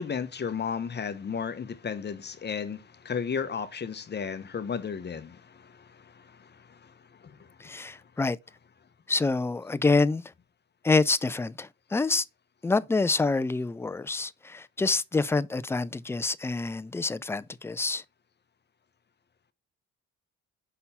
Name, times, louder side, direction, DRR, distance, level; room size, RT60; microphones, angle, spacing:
voice 1, 0.0-6.9 7.2-7.4 7.6-7.7, left 6 dB, 35° left, 0.9 m, -34 dB
voice 2, 7.6-8.4 9.1-10.2 10.8-12.2 12.6-18.0, left 3 dB, 10° left, 0.3 m, -27 dB
5.5 x 4.2 x 5.5 m
cardioid pair, 90°, 30 cm